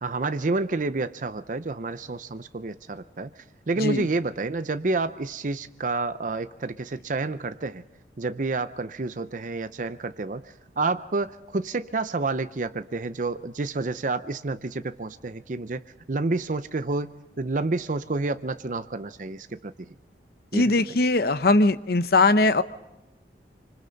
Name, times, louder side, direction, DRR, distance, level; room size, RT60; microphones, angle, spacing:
voice 1, 0.0-3.3 3.7-7.8 8.2-19.9 20.5-20.7, right 3 dB, 45° right, 11 dB, 0.6 m, -29 dB
voice 2, 20.5-22.6, left 2 dB, 60° left, 12 dB, 0.8 m, -20 dB
26.0 x 25.5 x 4.0 m, 0.98 s
head